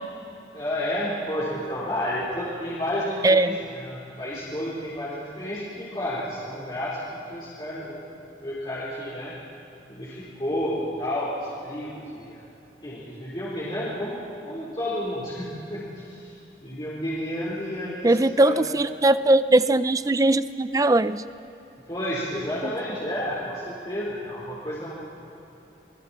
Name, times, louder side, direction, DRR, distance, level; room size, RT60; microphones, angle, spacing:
voice 1, 0.5-7.0 7.3-8.0 8.4-9.3 9.9-12.4 12.8-14.2 14.4-16.3 16.6-18.7 21.9-24.9, left 1 dB, 25° left, -9 dB, 4.2 m, -31 dB
voice 2, 3.2-3.6 18.0-21.2, right 2 dB, 20° right, 14 dB, 0.4 m, -20 dB
29.0 x 22.5 x 4.4 m, 3.0 s
head